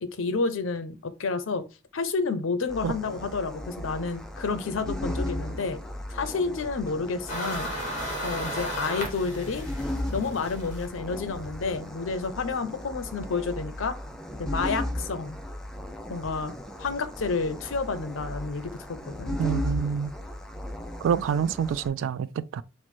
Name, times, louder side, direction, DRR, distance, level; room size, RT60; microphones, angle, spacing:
voice 1, 0.0-1.6 1.9-5.8 6.1-7.7 8.2-9.7 10.1-14.0 14.4-15.4 16.1-16.5 16.8-19.4, left 4 dB, 85° left, 0.6 m, -30 dB
sound 1, 2.7-21.9, left 1 dB, 5° left, 0.4 m, -36 dB
sound 2, 7.3-11.8, equal, 40° left, 1.4 m, -35 dB
voice 2, 19.4-20.1 21.0-22.6, right 7 dB, 75° right, 0.3 m, -27 dB
4.5 x 2.1 x 4.2 m
head